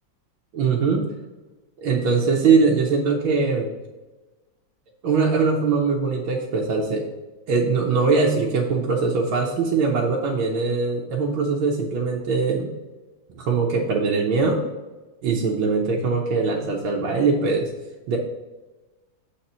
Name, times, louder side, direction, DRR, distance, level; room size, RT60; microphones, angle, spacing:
voice 1, 0.5-1.1 1.8-3.7 5.0-7.1 7.5-12.7 13.4-14.6 15.2-17.7 18.1-18.2, right 4 dB, 85° right, -1 dB, 1.7 m, -21 dB
7.5 x 4.3 x 5.3 m, 1.2 s
omnidirectional pair, 2.1 m